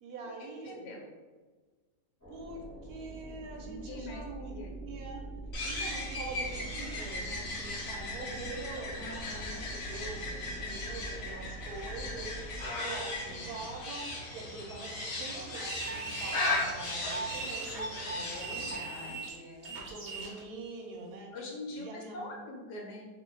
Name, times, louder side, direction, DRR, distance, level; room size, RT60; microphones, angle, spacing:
voice 1, 0.0-0.8 2.3-5.2 5.6-19.2 19.9-21.3 21.7-22.3, right 3 dB, 70° right, 1 dB, 1.0 m, -44 dB
voice 2, 0.6-1.0 3.6-4.2 4.5-4.8 6.4-6.6 8.9-9.7 13.3-13.7 18.1-19.8 21.3-23.1, left 1 dB, 80° left, 0 dB, 1.3 m, -44 dB
sound 1, 2.2-12.6, right 2 dB, 15° left, 1.1 m, -45 dB
sound 2, 5.5-18.8, left 2 dB, 60° left, 1.1 m, -37 dB
sound 3, 15.5-20.4, right 3 dB, 50° right, 0.7 m, -40 dB
2.6 x 2.6 x 3.7 m, 1.3 s
omnidirectional pair, 1.8 m